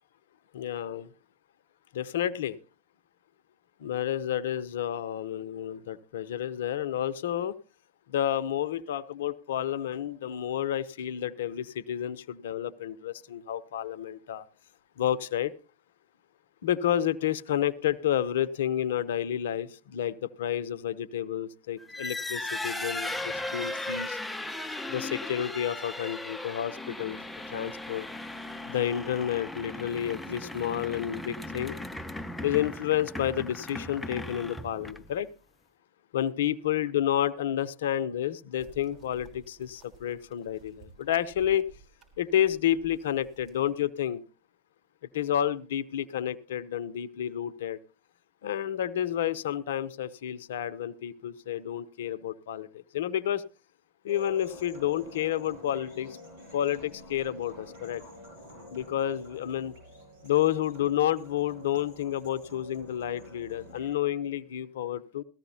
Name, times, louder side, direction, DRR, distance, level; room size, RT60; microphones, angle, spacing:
voice 1, 0.5-1.1 1.9-2.6 3.8-7.6 8.1-14.4 15.0-15.5 16.6-24.2 24.9-27.2 27.5-28.1 28.7-31.8 32.4-35.3 36.1-41.7 42.2-44.2 45.1-47.8 48.4-53.4 54.0-56.2 56.5-58.0 58.7-59.7 60.2-65.2, left 11 dB, 75° left, 15 dB, 0.7 m, -30 dB
sound 1, 21.8-35.2, left 2 dB, 5° left, 0.9 m, -37 dB
sound 2, 38.6-43.7, right 5 dB, 40° right, 3.8 m, -55 dB
sound 3, 54.1-63.9, equal, 70° right, 7.3 m, -49 dB
18.0 x 14.5 x 2.8 m, 0.33 s
hypercardioid pair, 85°, 0 cm